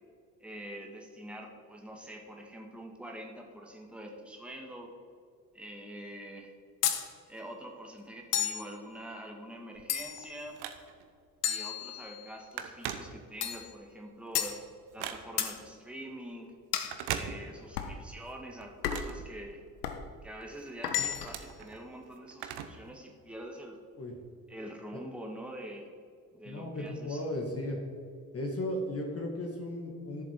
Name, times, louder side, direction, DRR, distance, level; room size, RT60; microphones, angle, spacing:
voice 1, 0.4-4.9 5.5-6.5 7.3-10.6 11.4-14.6 14.9-16.5 17.1-19.6 20.2-23.8 24.5-25.9 26.3-27.2, right 1 dB, ahead, 1 dB, 1.8 m, -45 dB
sound 1, 6.8-7.1 8.3-8.7 9.9-10.3 11.4-12.3 13.4-13.7 14.3-14.6 15.4-15.6 16.7-17.0 17.8-18.0 18.8-19.2 19.8-20.0 20.8-21.4, left 9 dB, 80° left, 0.8 m, -32 dB
Telephone, 9.8-11.2 11.7-11.9 12.1-13.6 14.1-15.6 16.8-17.9 18.2-20.0 20.4-22.9 23.2-23.3 24.2-24.3, right 9 dB, 55° right, 1.0 m, -41 dB
voice 2, 26.5-27.8 28.3-30.2, left 1 dB, 30° left, 1 dB, 1.8 m, -35 dB
11.5 x 7.2 x 4.6 m, 2.3 s
figure-of-eight pair, 45°, 47 cm